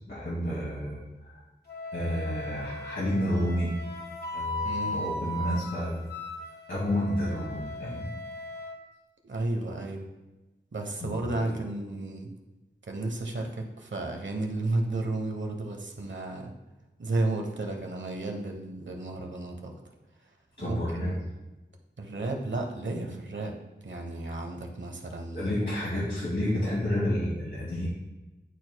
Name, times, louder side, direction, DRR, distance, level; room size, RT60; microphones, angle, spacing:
voice 1, 0.1-1.4 1.9-3.7 4.3-6.0 6.7-8.1 11.0-11.5 20.6-21.1 25.3-27.9, left 1 dB, 90° left, -9 dB, 2.2 m, -30 dB
Wind instrument woodwind instrument, 1.7-8.8, left 1 dB, 55° left, 1.1 m, -37 dB
voice 2, 4.6-5.2 9.2-10.1 10.7-12.3 12.9-16.5 17.0-19.8 20.6-21.2 22.0-23.6 23.8-25.5, right 2 dB, 80° right, 3 dB, 1.0 m, -33 dB
11.0 x 4.4 x 2.3 m, 1.1 s
wide cardioid pair, 70°, 19 cm